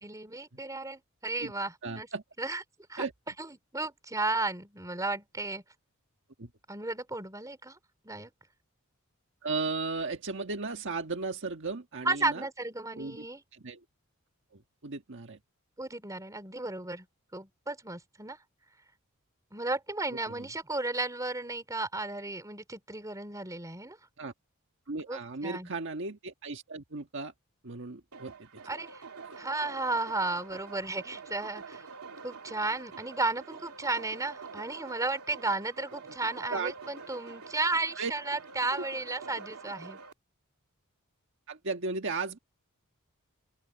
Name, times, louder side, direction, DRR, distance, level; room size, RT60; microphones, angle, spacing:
voice 1, 0.0-2.1 2.4-2.6 2.9-3.1 3.4-5.6 6.7-7.8 8.0-8.3 12.1-13.4 15.8-17.1 17.3-18.4 19.5-24.0 25.1-25.7 28.7-29.0 29.4-31.9 32.2-40.0, right 2 dB, 15° right, 3.6 m, -34 dB
voice 2, 1.8-2.2 3.0-3.1 6.4-6.5 9.4-12.4 12.9-13.3 13.5-13.8 14.5-15.4 20.3-20.5 24.2-24.3 24.9-27.3 27.6-28.6 36.5-36.7 38.0-38.1 38.7-38.8 41.5-42.4, right 3 dB, 55° right, 1.5 m, -35 dB
sound 1, 28.1-40.1, right 5 dB, 85° right, 2.6 m, -46 dB
open air
head